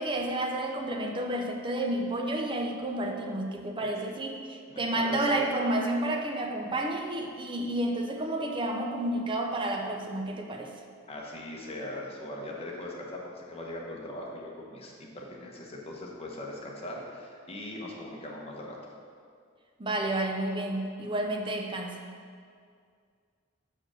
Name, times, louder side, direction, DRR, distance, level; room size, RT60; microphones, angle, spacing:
voice 1, 0.0-10.7 19.8-22.0, right 1 dB, 25° right, 3 dB, 0.7 m, -30 dB
voice 2, 4.7-5.5 11.1-18.8, left 1 dB, 30° left, -2 dB, 1.1 m, -40 dB
6.3 x 4.8 x 6.2 m, 2.2 s
head